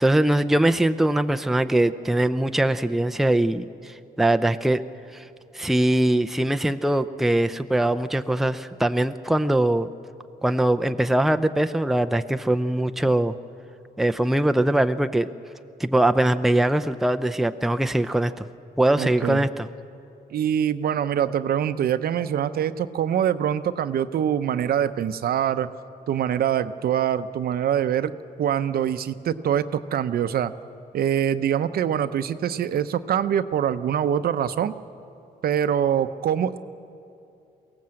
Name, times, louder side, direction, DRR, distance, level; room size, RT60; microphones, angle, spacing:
voice 1, 0.0-4.8 5.1-5.2 5.5-9.9 10.4-13.3 14.0-15.3 15.8-18.5 18.8-19.7, right 1 dB, ahead, 8 dB, 0.5 m, -22 dB
voice 2, 19.0-19.5 20.3-25.7 26.1-28.1 28.4-30.5 30.9-34.7 35.4-36.6, right 9 dB, 70° right, 12 dB, 0.7 m, -24 dB
23.0 x 17.5 x 7.7 m, 2.6 s
cardioid pair, 100°, 16 cm